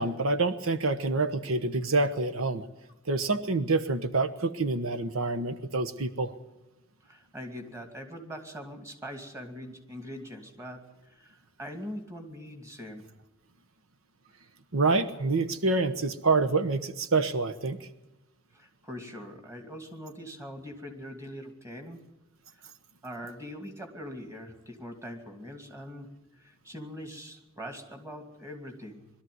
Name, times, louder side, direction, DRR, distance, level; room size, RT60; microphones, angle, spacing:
voice 1, 0.0-2.7 3.1-6.3 14.7-17.9, right 3 dB, 90° right, 9 dB, 1.1 m, -27 dB
voice 2, 7.0-13.1 18.5-22.0 22.5-22.6 23.0-29.1, equal, 15° right, 4 dB, 2.6 m, -42 dB
21.5 x 13.0 x 9.4 m, 0.98 s
head